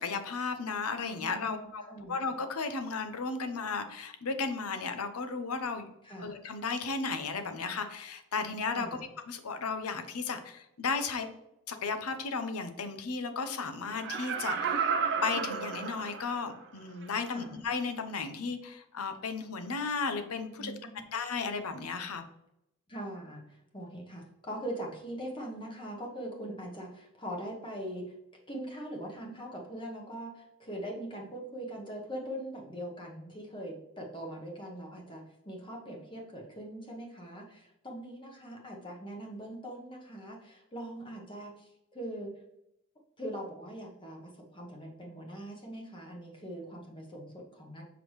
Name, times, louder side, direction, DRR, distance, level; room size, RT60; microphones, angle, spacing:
voice 1, 0.0-5.9 6.2-9.0 9.3-11.3 11.7-14.9 15.2-20.7 21.1-22.2, left 4 dB, 80° left, 8 dB, 0.7 m, -34 dB
voice 2, 1.2-1.5 1.8-2.2 6.0-6.4 8.7-9.0 17.3-17.5 20.6-21.0 22.9-28.0 28.5-42.3 43.2-47.8, right 1 dB, 20° left, -1 dB, 1.0 m, -42 dB
Laughter, 13.9-16.5 17.0-17.1, right 6 dB, 50° right, 0.6 m, -32 dB
6.0 x 5.1 x 3.1 m, 0.84 s
head